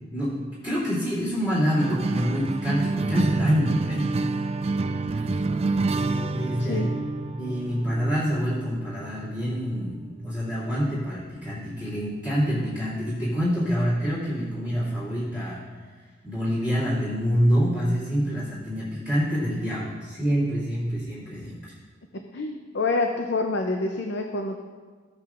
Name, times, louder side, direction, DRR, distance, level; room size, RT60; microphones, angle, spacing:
voice 1, 0.1-4.1 5.9-6.9 7.4-10.0 10.2-15.6 16.2-21.7, equal, 25° left, -13 dB, 2.9 m, -26 dB
sound 1, 1.8-10.5, right 3 dB, 30° right, 0.3 m, -28 dB
voice 2, 22.3-24.6, left 3 dB, 65° left, 4 dB, 0.6 m, -27 dB
15.0 x 8.7 x 2.5 m, 1.5 s
head